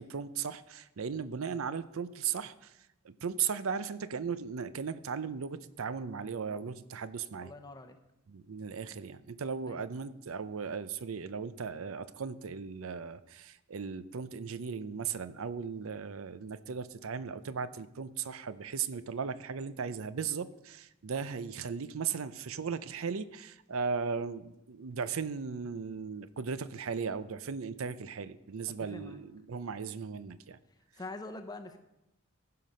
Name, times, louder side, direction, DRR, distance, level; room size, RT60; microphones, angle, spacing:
voice 1, 0.0-7.5 8.3-30.6, right 6 dB, 80° right, 14 dB, 0.5 m, -37 dB
voice 2, 7.4-8.0 9.7-9.8 28.8-29.2 30.9-31.8, left 2 dB, 20° left, 6 dB, 0.7 m, -44 dB
15.0 x 5.9 x 5.4 m, 0.89 s
head